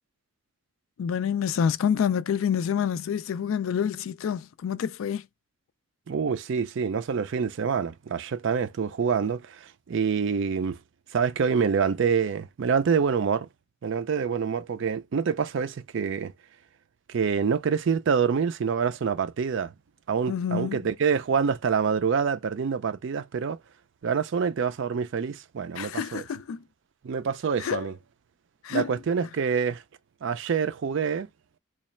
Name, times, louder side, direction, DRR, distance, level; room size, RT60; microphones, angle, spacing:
voice 1, 1.0-5.2 20.3-20.8 25.8-26.6 27.6-27.9 28.6-28.9, left 7 dB, 65° left, 0.3 m, -27 dB
voice 2, 6.1-10.8 11.1-13.5 13.8-16.3 17.1-19.7 20.1-23.6 24.0-26.2 27.0-27.9 28.7-29.8 30.2-31.3, right 6 dB, 60° right, 0.4 m, -26 dB
3.1 x 2.3 x 4.3 m
head